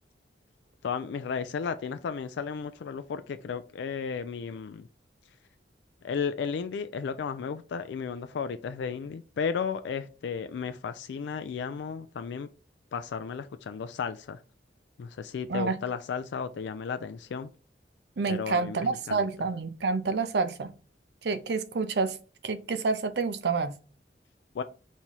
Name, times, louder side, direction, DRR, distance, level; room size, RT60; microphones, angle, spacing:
voice 1, 0.8-4.9 6.0-12.5 12.9-14.4 15.0-17.5 18.3-19.3 24.5-24.6, left 6 dB, 75° left, 0.3 m, -34 dB
voice 2, 18.2-20.7 21.2-22.2 22.4-23.7, right 4 dB, 65° right, 0.5 m, -28 dB
4.1 x 3.0 x 3.7 m
head